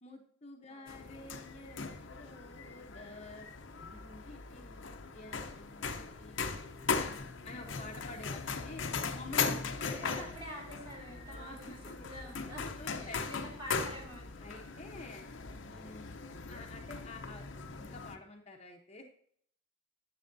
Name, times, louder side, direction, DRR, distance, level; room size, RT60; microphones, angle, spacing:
voice 1, 0.0-3.5 3.8-4.8 5.1-7.2 7.4-8.9 9.1-10.3 11.3-11.6 12.0-12.1 12.4-13.3 14.4-15.2 15.6-16.2 16.5-19.0, left 2 dB, 35° left, 2 dB, 0.9 m, -49 dB
voice 2, 0.7-1.0 9.6-12.7 13.0-14.7, equal, 25° right, -1 dB, 3.3 m, -48 dB
sound 1, 0.9-18.2, left 5 dB, 65° left, 0.8 m, -39 dB
10.5 x 7.6 x 2.7 m, 0.62 s
head